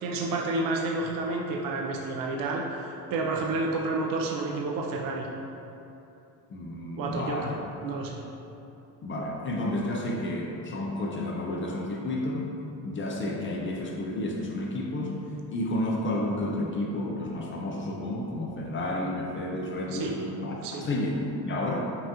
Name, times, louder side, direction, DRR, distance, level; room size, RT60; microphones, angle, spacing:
voice 1, 0.0-5.3 7.0-7.5 7.8-8.2 19.9-20.2 20.6-20.9, right 3 dB, 50° right, -1 dB, 0.5 m, -30 dB
voice 2, 6.5-7.5 9.0-12.4 12.8-15.1 15.5-22.0, left 1 dB, 30° left, -1 dB, 0.4 m, -31 dB
5.5 x 2.4 x 2.8 m, 2.8 s
cardioid pair, 110°, 45 cm